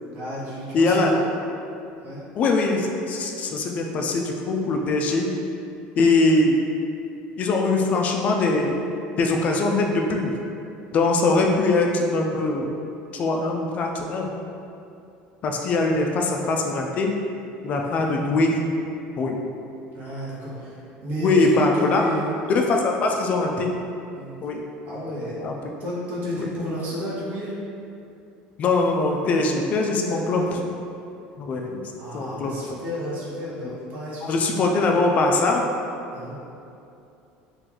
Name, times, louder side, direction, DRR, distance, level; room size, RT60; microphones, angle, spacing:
voice 1, 0.1-1.2 2.0-2.2 17.8-18.4 19.9-22.3 24.1-24.4 24.8-25.4 25.8-27.5 30.1-30.4 32.0-34.7 36.1-36.4, equal, 45° right, -7 dB, 0.9 m, -32 dB
voice 2, 0.7-1.1 2.4-5.3 6.0-6.5 7.4-8.8 9.2-10.3 10.9-12.7 13.1-14.3 15.4-17.1 17.6-18.6 19.2-19.4 21.2-22.1 22.5-23.7 24.4-24.6 25.4-25.5 26.4-26.5 28.6-30.4 31.4-32.5 34.2-35.7, left 3 dB, 40° left, 1 dB, 0.3 m, -22 dB
2.9 x 2.5 x 3.8 m, 2.7 s
cardioid pair, 135°, 4 cm